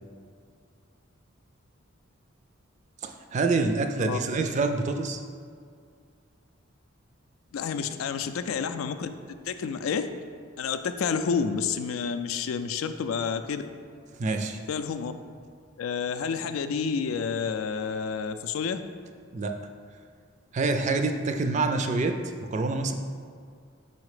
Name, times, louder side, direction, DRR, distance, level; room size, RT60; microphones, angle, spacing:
voice 1, 3.0-5.2 14.2-14.6 19.3-19.5 20.5-22.9, right 3 dB, 35° right, 6 dB, 0.3 m, -26 dB
voice 2, 7.5-9.1 9.5-10.1 10.6-13.6 14.7-15.1 15.8-18.8, left 6 dB, 85° left, 9 dB, 0.3 m, -29 dB
4.7 x 4.2 x 4.8 m, 2.2 s
head